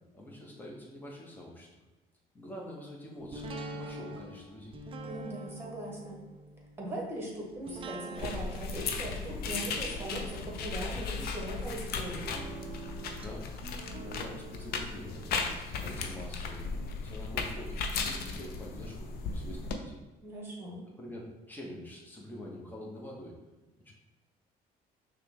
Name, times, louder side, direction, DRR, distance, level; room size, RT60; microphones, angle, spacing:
voice 1, 0.1-1.7 2.3-4.7 13.1-13.5 13.9-16.6 17.0-20.0 21.0-23.4 23.8-23.9, equal, 10° left, -3 dB, 1.0 m, -45 dB
sound 1, 3.3-16.2 16.6-16.7, right 3 dB, 30° right, 0.5 m, -46 dB
voice 2, 5.0-6.2 6.8-12.2 20.2-20.8, right 1 dB, 15° right, -2 dB, 1.4 m, -40 dB
sound 2, 8.2-19.7, left 4 dB, 65° left, 0.5 m, -36 dB
5.7 x 2.3 x 3.4 m, 1.1 s
cardioid pair, 110°, 17 cm